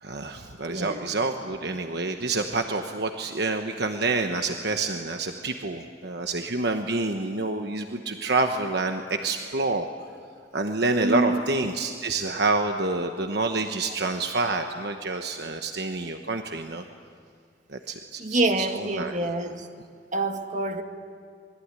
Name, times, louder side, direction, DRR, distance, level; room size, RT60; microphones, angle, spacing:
voice 1, 0.0-9.9 10.5-16.8 17.7-19.2, right 3 dB, 65° right, 5 dB, 1.2 m, -28 dB
voice 2, 0.7-1.1 11.0-11.4 18.2-19.7 20.1-20.8, right 2 dB, 45° right, 5 dB, 2.0 m, -26 dB
26.5 x 21.5 x 9.9 m, 2.1 s
head